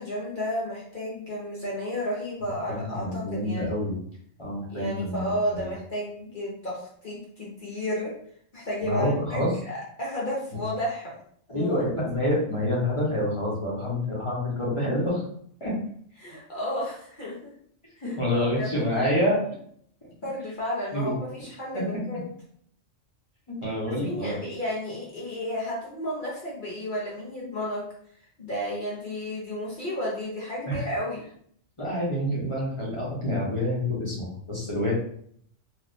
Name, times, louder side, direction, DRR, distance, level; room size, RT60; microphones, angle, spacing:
voice 1, 0.0-3.7 4.7-8.1 8.5-11.1 11.5-11.8 16.2-17.5 18.0-19.0 20.2-22.3 24.0-27.8 28.4-31.2, equal, 45° left, -6 dB, 1.0 m, -32 dB
voice 2, 2.7-4.0 4.4-5.7 8.8-9.5 10.5-10.6 11.5-15.2 15.6-15.7 18.0-19.4 20.9-21.1 21.7-21.8 23.5-24.3 30.7-30.8 31.8-34.9, left 1 dB, 25° left, -6 dB, 1.2 m, -27 dB
3.1 x 2.8 x 2.7 m, 0.62 s
omnidirectional pair, 1.3 m